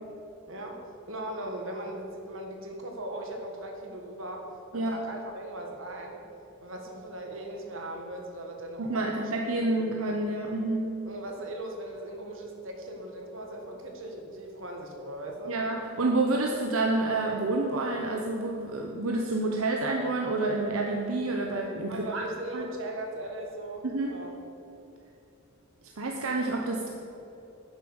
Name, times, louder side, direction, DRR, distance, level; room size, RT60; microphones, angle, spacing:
voice 1, 0.5-4.5 4.7-6.2 6.6-9.3 9.7-10.0 11.0-15.6 21.9-24.3, right 1 dB, 65° right, 2 dB, 1.7 m, -39 dB
voice 2, 8.8-10.9 15.5-22.2 22.5-22.7 23.8-24.2 26.0-26.9, right 2 dB, 85° right, 1 dB, 0.9 m, -28 dB
10.0 x 7.4 x 7.2 m, 3.0 s
head